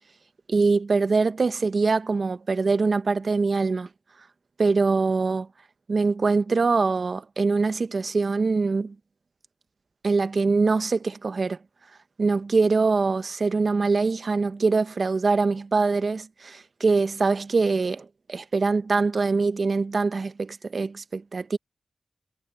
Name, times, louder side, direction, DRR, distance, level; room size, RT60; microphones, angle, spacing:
voice 1, 0.5-3.9 4.6-5.5 5.9-8.9 10.0-11.6 12.2-21.6, right 4 dB, 65° right, 0.9 m, -23 dB
cardioid pair, 45°, 0 cm